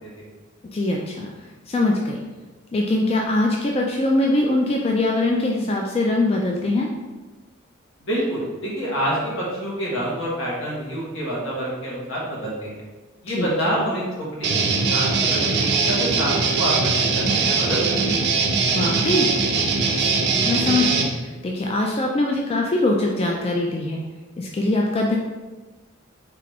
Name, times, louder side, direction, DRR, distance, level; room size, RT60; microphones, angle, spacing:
voice 1, 0.6-1.3 1.7-2.2 2.7-6.9 13.3-13.8 18.6-19.3 20.0-24.0 24.4-25.2, left 2 dB, 30° left, 0 dB, 0.3 m, -22 dB
voice 2, 8.0-12.8 13.2-14.6 14.9-18.3, equal, 75° left, -5 dB, 1.4 m, -27 dB
Guitar, 14.4-21.1, right 4 dB, 55° right, 0.5 m, -21 dB
3.7 x 3.3 x 3.3 m, 1.2 s
head